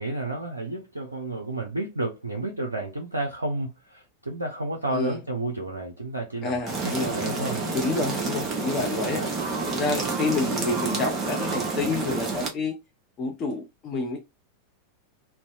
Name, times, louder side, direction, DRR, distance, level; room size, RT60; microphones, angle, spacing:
voice 1, 0.0-6.7 7.0-7.6 9.1-9.3, right 2 dB, 80° right, 0.4 m, -31 dB
voice 2, 6.4-7.2 7.7-9.2 9.7-12.7 13.2-14.2, left 3 dB, 30° left, 0.5 m, -28 dB
sound 1, 6.7-12.5, right 3 dB, 25° right, 0.8 m, -29 dB
2.6 x 2.0 x 2.4 m
figure-of-eight pair, 90°, 0 cm